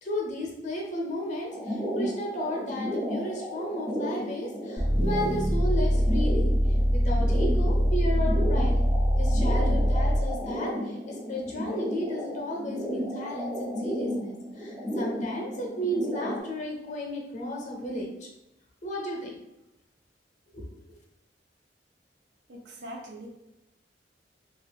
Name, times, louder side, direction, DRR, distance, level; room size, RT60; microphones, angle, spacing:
voice 1, 0.0-6.5 6.9-8.8 9.2-18.3 18.8-19.3 20.5-20.6 20.9-21.0, equal, 45° left, 0 dB, 0.7 m, -33 dB
sound 1, 1.5-16.4, equal, 10° right, 0.4 m, -34 dB
sound 2, 4.8-10.4, equal, 85° right, 0.9 m, -23 dB
voice 2, 22.5-23.3, right 1 dB, 70° right, 1 dB, 0.6 m, -42 dB
2.4 x 2.4 x 3.3 m, 0.91 s
head